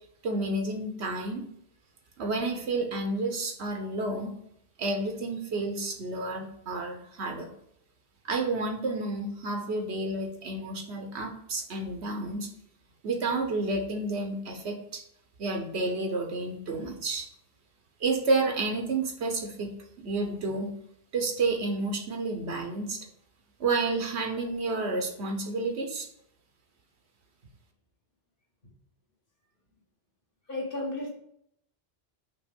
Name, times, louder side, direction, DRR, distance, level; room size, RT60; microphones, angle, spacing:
voice 1, 0.2-1.5 2.2-4.3 4.8-7.5 8.2-12.5 13.0-15.0 15.4-17.3 18.0-20.7 21.1-23.0 23.6-26.1, right 3 dB, 85° right, 4 dB, 1.3 m, -30 dB
voice 2, 30.5-31.1, left 2 dB, 55° left, -2 dB, 1.7 m, -33 dB
5.8 x 3.1 x 5.2 m, 0.73 s
omnidirectional pair, 1.1 m